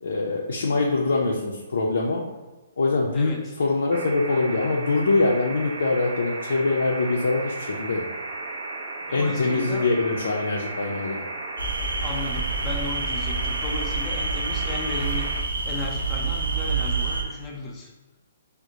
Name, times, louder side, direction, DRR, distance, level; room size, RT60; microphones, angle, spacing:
voice 1, 0.0-2.2 2.8-8.0 9.1-11.2, left 3 dB, 70° left, -2 dB, 0.5 m, -24 dB
sound 1, 3.9-15.4, right 2 dB, 50° right, 0.4 m, -35 dB
voice 2, 9.1-9.9 12.0-17.9, left 2 dB, 20° left, -2 dB, 0.6 m, -35 dB
sound 2, 11.6-17.2, right 3 dB, 80° right, 0.7 m, -27 dB
4.9 x 2.1 x 2.7 m, 1.1 s
figure-of-eight pair, 125°, 0 cm